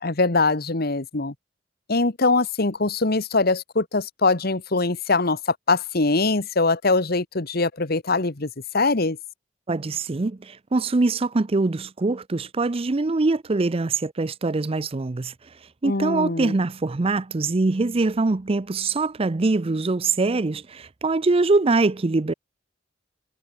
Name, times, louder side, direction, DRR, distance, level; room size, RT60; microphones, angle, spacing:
voice 1, 0.0-1.3 1.9-9.2 15.8-16.5, left 3 dB, 55° left, 1.5 m, -22 dB
voice 2, 9.7-15.3 15.8-22.3, right 3 dB, 30° right, 0.5 m, -23 dB
head